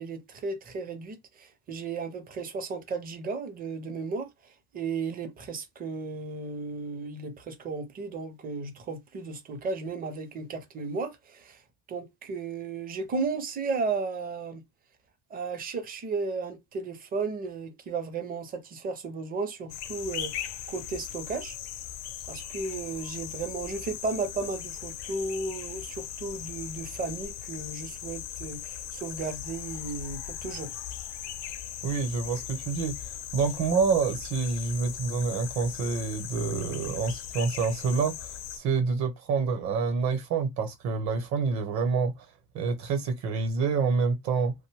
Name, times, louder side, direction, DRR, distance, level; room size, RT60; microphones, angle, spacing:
voice 1, 0.0-4.3 4.7-11.6 11.9-14.6 15.3-21.6 22.3-30.7, right 4 dB, 25° right, 0.5 m, -34 dB
sound 1, 19.7-38.6, left 10 dB, 50° left, 0.5 m, -39 dB
voice 2, 31.8-33.0 33.3-38.1 38.6-42.1 42.5-44.5, right 5 dB, 50° right, 0.9 m, -27 dB
2.6 x 2.1 x 3.2 m
cardioid pair, 145°, 37 cm